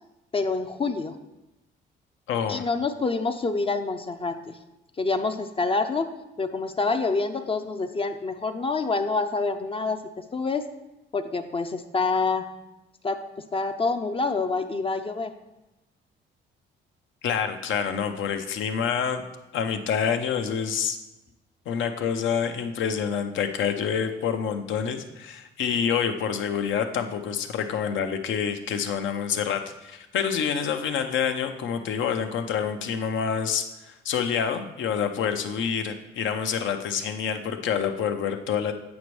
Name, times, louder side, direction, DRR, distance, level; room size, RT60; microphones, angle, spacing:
voice 1, 0.3-1.2 2.5-4.6 5.0-6.1 6.4-10.0 10.3-10.7 11.1-12.5 13.0-15.3, left 3 dB, 30° left, 7 dB, 0.4 m, -27 dB
voice 2, 2.3-2.7 17.2-19.2 19.5-21.0 21.7-38.7, left 7 dB, 75° left, 6 dB, 0.7 m, -27 dB
8.3 x 5.1 x 3.1 m, 0.96 s
cardioid pair, 90°, 20 cm